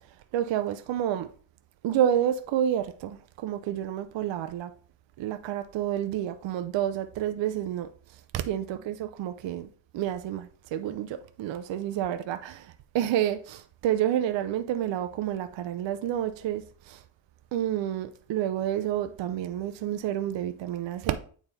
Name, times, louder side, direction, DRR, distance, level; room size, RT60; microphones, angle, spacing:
voice 1, 0.3-1.3 1.8-4.7 5.2-7.9 8.3-9.7 9.9-17.0 17.5-21.2, right 11 dB, 65° right, 0.6 m, -29 dB
8.8 x 3.5 x 4.1 m
cardioid pair, 115°, 48 cm